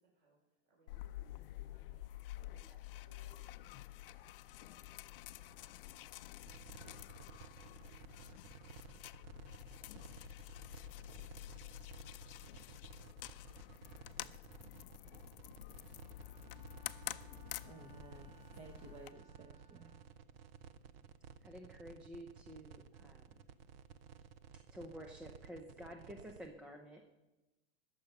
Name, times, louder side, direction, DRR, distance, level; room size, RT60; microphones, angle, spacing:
voice 1, 0.0-2.1 2.5-6.3 7.5-9.5, right 2 dB, 40° right, -1 dB, 5.4 m, -71 dB
sound 1, 0.9-19.1, left 15 dB, 60° left, 0.5 m, -50 dB
sound 2, 6.5-26.5, right 7 dB, 65° right, 0.8 m, -56 dB
Bowed string instrument, 15.9-20.5, right 5 dB, 85° right, 4.8 m, -66 dB
voice 2, 17.7-19.9, right 4 dB, 20° right, 3 dB, 0.9 m, -55 dB
voice 3, 21.4-23.3 24.7-27.1, equal, 5° right, 3 dB, 0.4 m, -51 dB
20.5 x 7.0 x 5.3 m, 1.1 s
supercardioid pair, 155°, 32 cm